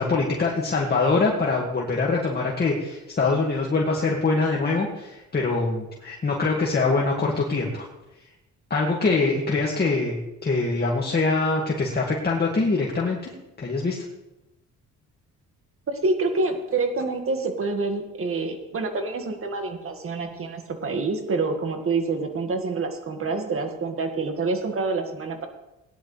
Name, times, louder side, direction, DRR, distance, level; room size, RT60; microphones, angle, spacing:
voice 1, 0.0-7.9 8.7-13.3 13.6-14.0, left 3 dB, 35° left, -2 dB, 2.1 m, -24 dB
voice 2, 15.9-25.5, right 3 dB, 45° right, 5 dB, 2.0 m, -27 dB
18.0 x 10.5 x 3.4 m, 0.95 s
cardioid pair, 90°, 30 cm